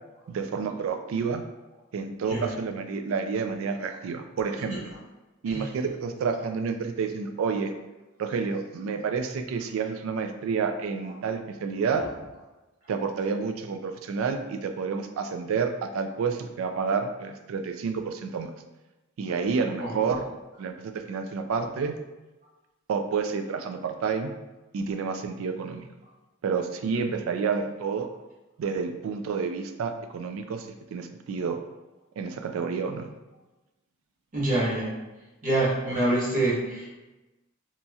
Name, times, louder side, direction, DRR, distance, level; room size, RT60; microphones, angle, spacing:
voice 1, 0.3-1.4 1.9-4.9 5.4-7.7 8.2-12.0 12.9-18.5 19.2-20.2 20.6-22.0 22.9-24.3 24.7-25.9 26.4-28.1 28.6-31.6 32.2-33.1, right 5 dB, 80° right, 7 dB, 0.3 m, -29 dB
voice 2, 19.8-20.2 34.3-34.9 35.4-37.0, right 2 dB, 40° right, -7 dB, 1.1 m, -26 dB
2.9 x 2.7 x 2.3 m, 1.1 s
head